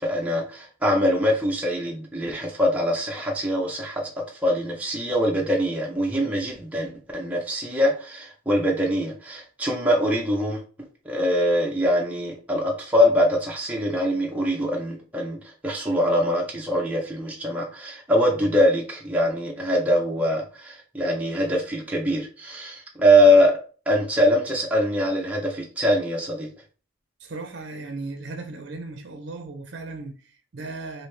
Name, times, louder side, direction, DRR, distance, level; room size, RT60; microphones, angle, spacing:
voice 1, 0.0-10.6 11.1-23.6 23.9-26.5, equal, 5° right, 0.5 m, -23 dB
voice 2, 27.2-31.1, right 3 dB, 55° right, 0.5 m, -36 dB
3.1 x 2.7 x 3.1 m
head